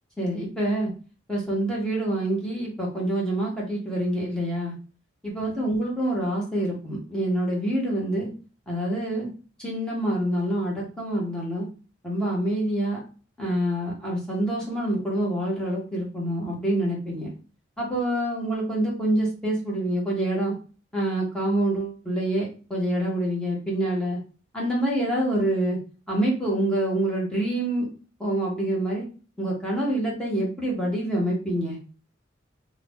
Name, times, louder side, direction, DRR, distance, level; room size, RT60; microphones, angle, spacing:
voice 1, 0.2-0.9 1.3-4.7 5.2-8.3 8.7-9.3 9.6-11.7 12.0-13.0 13.4-17.3 17.8-20.6 20.9-24.2 24.5-25.8 26.1-27.9 28.2-29.1 29.4-31.8, right 1 dB, 5° left, -5 dB, 1.1 m, -26 dB
2.9 x 2.4 x 3.5 m, 0.36 s
head